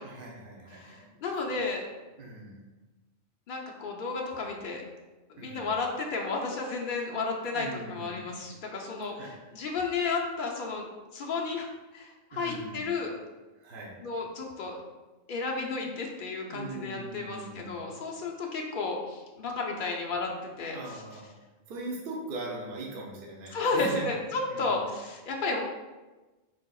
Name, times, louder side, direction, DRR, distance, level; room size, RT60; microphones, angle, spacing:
voice 1, 0.0-1.1 1.5-1.6 2.2-2.6 5.4-5.7 7.4-8.3 9.1-9.3 12.3-12.9 13.6-14.0 16.5-17.9 20.7-21.4 21.7-24.2 24.5-24.9, right 2 dB, 50° right, -2 dB, 0.8 m, -41 dB
voice 2, 0.8-1.8 3.5-4.8 5.3-11.7 11.9-13.1 14.0-14.8 15.3-20.8 23.5-25.6, left 3 dB, 50° left, 0 dB, 0.6 m, -32 dB
4.7 x 3.9 x 2.3 m, 1.2 s
omnidirectional pair, 1.4 m